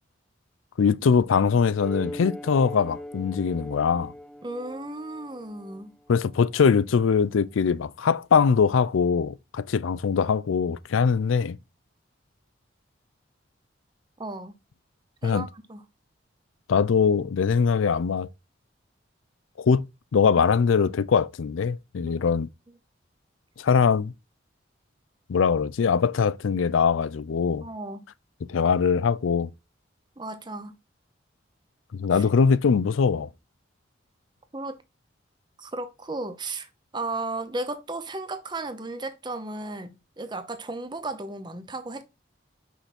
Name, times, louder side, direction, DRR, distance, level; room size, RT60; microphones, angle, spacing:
voice 1, 0.8-4.1 6.1-11.6 15.2-15.5 16.7-18.3 19.6-19.8 20.1-22.5 23.6-24.1 25.3-27.7 28.5-29.5 31.9-33.3, left 6 dB, 90° left, 0.4 m, -22 dB
sound 1, 1.8-6.8, left 1 dB, ahead, 0.3 m, -40 dB
voice 2, 4.4-5.9 14.2-14.5 15.2-15.8 22.0-22.3 27.6-28.0 30.2-30.8 32.1-32.2 34.5-34.8 35.6-42.0, right 2 dB, 25° right, 0.7 m, -35 dB
5.9 x 5.6 x 4.2 m
head